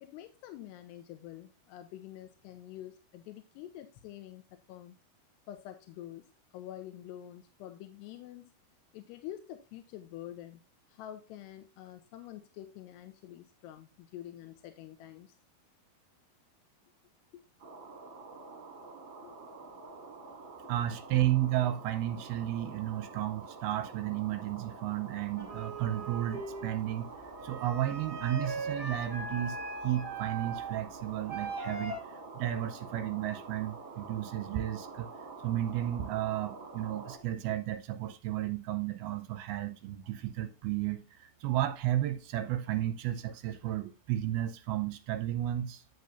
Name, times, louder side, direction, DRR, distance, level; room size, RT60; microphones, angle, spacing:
voice 1, 0.0-4.4 4.7-4.9 5.5-8.5 8.9-10.6 10.9-15.3 17.3-17.4 19.2-19.4 19.9-20.0, left 12 dB, 90° left, 3.0 m, -47 dB
sound 1, 17.6-37.2, right 3 dB, 35° right, 2.6 m, -47 dB
voice 2, 20.7-27.1 27.4-29.6 29.8-32.0 32.4-35.1 35.4-45.8, right 13 dB, 80° right, 2.5 m, -33 dB
sound 2, 25.4-32.0, right 3 dB, 15° right, 1.2 m, -39 dB
11.0 x 8.0 x 2.5 m
omnidirectional pair, 4.7 m